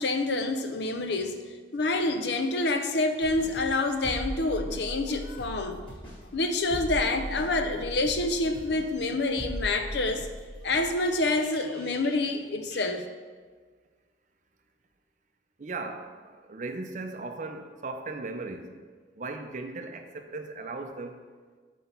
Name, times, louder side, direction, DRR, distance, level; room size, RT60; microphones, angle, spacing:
voice 1, 0.0-1.4 1.7-5.8 6.3-10.3 10.6-13.1, left 2 dB, 70° left, 7 dB, 0.5 m, -27 dB
sound 1, 3.2-12.4 12.7-12.8, equal, 25° left, 1.5 m, -40 dB
voice 2, 15.6-18.7 19.2-21.2, right 3 dB, 40° right, 6 dB, 0.5 m, -37 dB
5.7 x 4.1 x 5.8 m, 1.5 s
head